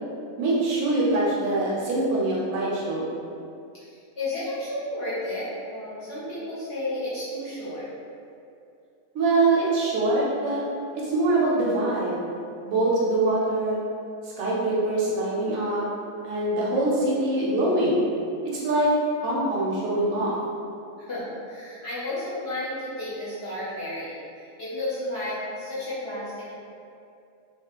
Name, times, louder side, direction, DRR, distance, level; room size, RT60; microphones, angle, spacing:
voice 1, 0.4-3.1 9.1-10.6 11.0-12.2 12.6-13.8 14.4-15.8 16.2-18.0 18.6-18.9 19.2-20.3, right 2 dB, 75° right, -5 dB, 0.9 m, -23 dB
voice 2, 3.8-7.9 21.0-24.2 24.6-26.5, left 1 dB, 55° left, -11 dB, 0.8 m, -32 dB
2.4 x 2.1 x 2.8 m, 2.5 s
omnidirectional pair, 1.5 m